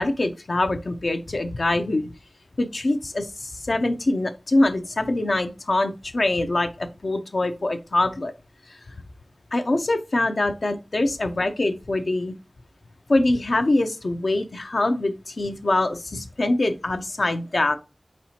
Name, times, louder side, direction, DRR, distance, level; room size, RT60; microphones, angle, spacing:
voice 1, 0.0-2.1 2.6-8.3 9.5-12.3 13.1-17.8, left 2 dB, 70° left, 8 dB, 0.5 m, -24 dB
4.2 x 4.1 x 2.8 m, 0.29 s
wide cardioid pair, 60°, 0 cm